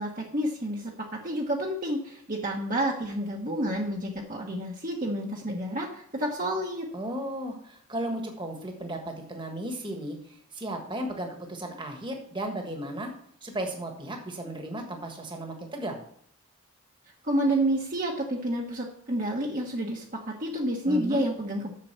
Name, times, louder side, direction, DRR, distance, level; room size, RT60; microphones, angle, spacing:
voice 1, 0.0-6.9 17.2-20.0 20.4-21.6, right 1 dB, 35° right, -1 dB, 1.2 m, -29 dB
voice 2, 6.9-13.1 13.4-16.0 20.9-21.2, right 1 dB, 20° right, 3 dB, 1.4 m, -35 dB
7.7 x 6.8 x 6.8 m, 0.64 s
head